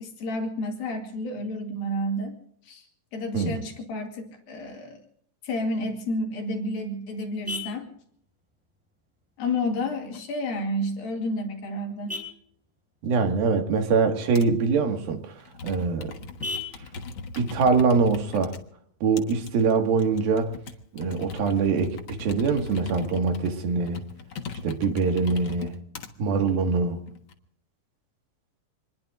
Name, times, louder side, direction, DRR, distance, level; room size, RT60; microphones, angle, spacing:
voice 1, 0.0-2.4 2.6-2.9 3.1-5.0 5.4-7.9 9.4-12.1, left 1 dB, 80° left, 2 dB, 4.1 m, -30 dB
Vehicle horn car horn honking, 6.2-19.2, left 3 dB, ahead, 4.6 m, -44 dB
voice 2, 13.0-15.3 15.6-16.1 17.4-18.5 19.0-20.5 20.9-24.0 24.6-25.7 26.2-27.0, right 4 dB, 80° right, 4 dB, 3.8 m, -23 dB
Computer keyboard, 14.3-14.6 15.4-18.6 19.2-26.1 26.8-27.3, left 4 dB, 55° left, 1.5 m, -39 dB
26.5 x 21.0 x 2.5 m, 0.65 s
omnidirectional pair, 4.1 m